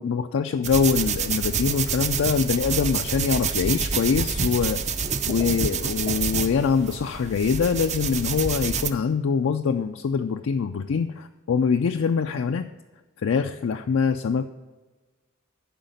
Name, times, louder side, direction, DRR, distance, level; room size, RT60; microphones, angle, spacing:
voice 1, 0.0-4.8 5.3-12.7 13.2-14.4, left 6 dB, 65° left, 6 dB, 0.4 m, -24 dB
sound 1, 0.6-8.9, right 6 dB, 35° right, 0.5 m, -27 dB
11.5 x 4.8 x 5.2 m, 1.2 s
head